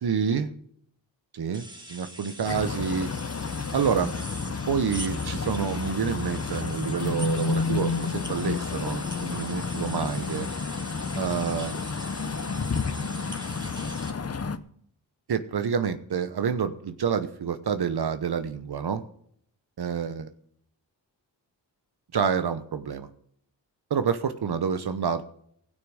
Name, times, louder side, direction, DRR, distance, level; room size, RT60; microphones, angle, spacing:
voice 1, 0.0-0.5 1.3-3.1 3.7-4.1 4.7-10.5 11.1-11.8 15.3-19.1 19.8-20.3 22.1-23.1 23.9-25.2, right 7 dB, 60° right, 10 dB, 1.0 m, -28 dB
sound 1, 1.5-14.1, right 1 dB, 10° right, 2.3 m, -43 dB
sound 2, 2.4-14.6, left 4 dB, 35° left, 0.9 m, -31 dB
17.0 x 6.3 x 6.3 m, 0.67 s
cardioid pair, 50°, 45 cm